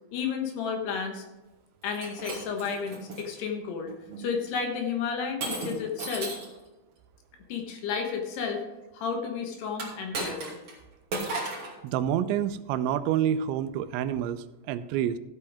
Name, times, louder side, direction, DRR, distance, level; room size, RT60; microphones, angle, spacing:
voice 1, 0.1-1.3 1.8-6.3 7.5-8.6 8.9-10.6, left 6 dB, 70° left, 3 dB, 3.2 m, -32 dB
Shatter, 1.8-3.2 3.9-4.2 5.4-6.6 9.7-10.8 11.1-11.7, right 2 dB, 35° right, 2.9 m, -35 dB
voice 2, 11.8-15.2, right 10 dB, 85° right, 12 dB, 3.0 m, -28 dB
14.5 x 8.5 x 3.6 m, 1.1 s
omnidirectional pair, 5.2 m